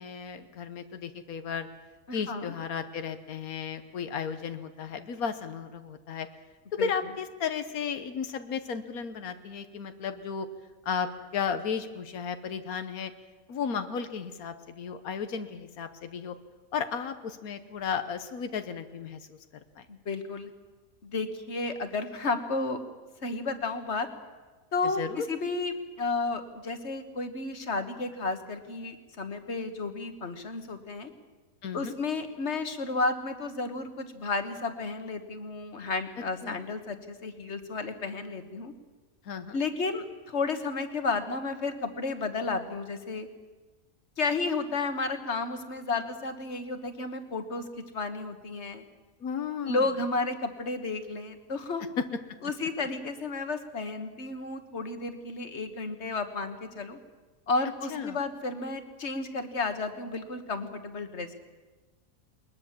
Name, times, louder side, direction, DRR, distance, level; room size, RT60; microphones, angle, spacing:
voice 1, 0.0-1.7 2.1-6.3 6.8-10.5 10.8-13.1 13.5-16.3 16.7-19.4 19.8-19.9 24.8-25.3 31.6-31.9 36.4-36.6 39.2-39.6 49.2-49.9 52.0-52.1 57.9-58.2, left 6 dB, 90° left, 9 dB, 1.5 m, -34 dB
voice 2, 2.1-2.5 6.8-6.9 19.9-20.5 21.0-22.8 23.2-24.1 24.7-31.1 31.7-38.7 39.5-43.3 44.2-47.6 47.9-48.9 49.6-51.8 52.4-57.0 57.5-61.3, left 3 dB, 50° left, 8 dB, 1.7 m, -32 dB
21.0 x 20.0 x 7.3 m, 1.3 s
omnidirectional pair, 1.5 m